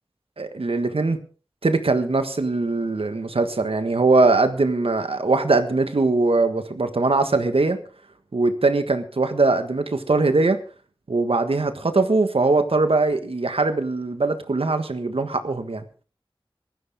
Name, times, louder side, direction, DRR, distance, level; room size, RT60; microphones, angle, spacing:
voice 1, 0.4-1.2 1.6-7.8 8.3-10.6 11.1-15.8, right 3 dB, 90° right, 9 dB, 1.5 m, -21 dB
19.0 x 14.5 x 3.7 m, 0.37 s
wide cardioid pair, 55°, 9 cm